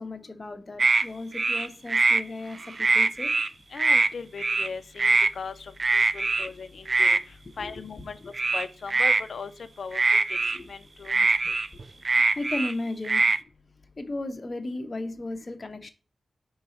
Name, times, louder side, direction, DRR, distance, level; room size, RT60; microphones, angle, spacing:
voice 1, 0.0-3.3 7.6-7.7 8.0-8.1 10.5-10.7 12.1-13.2 14.0-15.9, left 2 dB, 30° left, 6 dB, 0.8 m, -35 dB
sound 1, 0.8-1.0 1.3-2.2 2.6-3.5 3.8-4.1 4.4-4.7 5.0-5.3 5.8-6.5 6.9-7.2 8.3-9.2 9.9-10.6 11.1-12.7 13.0-13.4, right 3 dB, 40° right, 0.3 m, -22 dB
voice 2, 3.7-7.2 7.6-8.2 8.5-9.5 9.8-10.4 10.7-11.5, left 5 dB, 65° left, 10 dB, 0.5 m, -38 dB
5.3 x 3.9 x 5.7 m, 0.35 s
wide cardioid pair, 145°, 0 cm